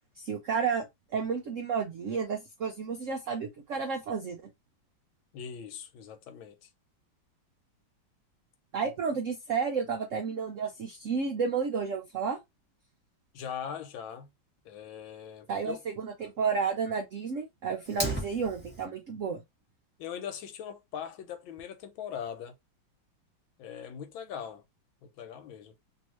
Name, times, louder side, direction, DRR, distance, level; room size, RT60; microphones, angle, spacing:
voice 1, 0.2-4.5 8.7-12.4 15.5-19.4, right 5 dB, 75° right, 0.7 m, -31 dB
voice 2, 5.3-6.7 13.3-14.3 14.6-15.8 20.0-22.5 23.6-24.6 25.0-25.7, left 8 dB, 90° left, 1.5 m, -41 dB
Fire, 17.8-18.8, right 2 dB, 5° right, 1.4 m, -34 dB
3.0 x 2.7 x 3.0 m
omnidirectional pair, 2.1 m